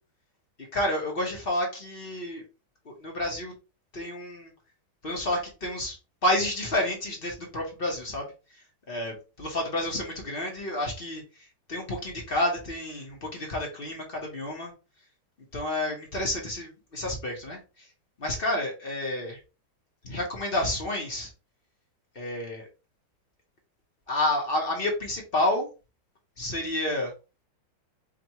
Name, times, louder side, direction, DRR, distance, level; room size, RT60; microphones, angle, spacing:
voice 1, 0.7-2.4 2.8-3.5 3.9-4.5 5.0-6.0 6.2-8.3 8.9-14.7 15.5-17.9 18.2-19.4 20.0-21.3 22.1-22.7 24.1-25.7 26.4-27.1, left 1 dB, 40° left, 0 dB, 0.9 m, -30 dB
5.0 x 2.6 x 2.9 m, 0.31 s
omnidirectional pair, 2.0 m